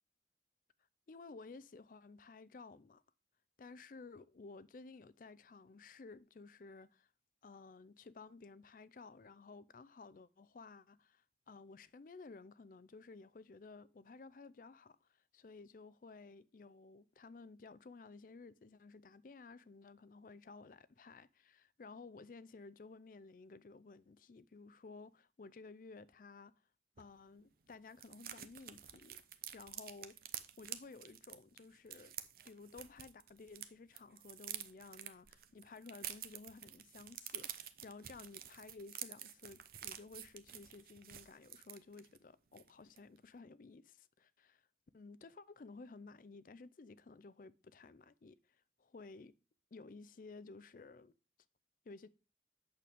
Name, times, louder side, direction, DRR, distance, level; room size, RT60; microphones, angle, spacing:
voice 1, 1.1-3.0 3.6-7.1 7.4-26.5 27.0-29.2 29.5-30.2 30.6-32.1 32.4-44.6 44.9-48.4 48.8-49.3 49.7-51.1 51.9-52.1, left 3 dB, 50° left, 0.4 m, -55 dB
sound 1, 27.0-27.1 27.3-27.4 27.7-33.7 33.9-42.2 42.5-42.7 43.0-43.2, right 11 dB, 55° right, 0.6 m, -49 dB
8.4 x 6.6 x 3.5 m
head